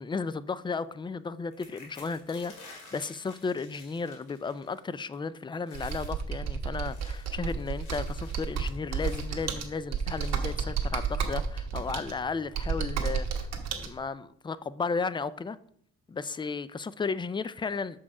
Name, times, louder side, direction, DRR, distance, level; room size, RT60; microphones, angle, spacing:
voice 1, 0.0-13.5 13.7-15.6 16.1-18.0, left 4 dB, 15° left, 0.3 m, -34 dB
sound 1, 1.5-4.9 5.1-5.4 5.6-6.2 6.7-9.4 10.2-10.7 11.4-11.5 11.9-12.1, left 3 dB, 85° left, 2.3 m, -52 dB
Computer keyboard, 5.7-13.9, right 6 dB, 60° right, 1.4 m, -32 dB
6.9 x 5.1 x 4.8 m
cardioid pair, 90°, 30 cm